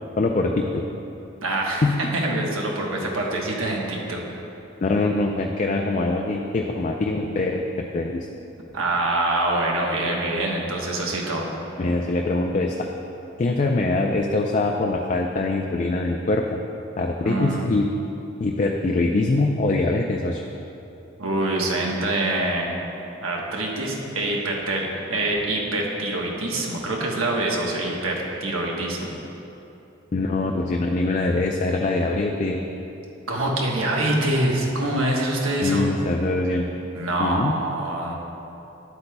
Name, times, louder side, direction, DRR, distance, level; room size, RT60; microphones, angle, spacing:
voice 1, 0.2-0.8 1.8-2.0 4.8-7.6 7.9-8.3 11.8-12.9 13.4-16.6 17.0-17.9 18.4-20.4 30.1-32.6 35.6-36.7 37.2-37.5, left 2 dB, 35° left, 1 dB, 0.3 m, -23 dB
voice 2, 1.4-4.2 8.7-11.4 17.2-17.7 21.2-22.7 23.2-29.1 33.3-35.8 36.9-38.1, right 2 dB, 90° right, -1 dB, 1.1 m, -25 dB
11.0 x 8.0 x 2.2 m, 2.9 s
head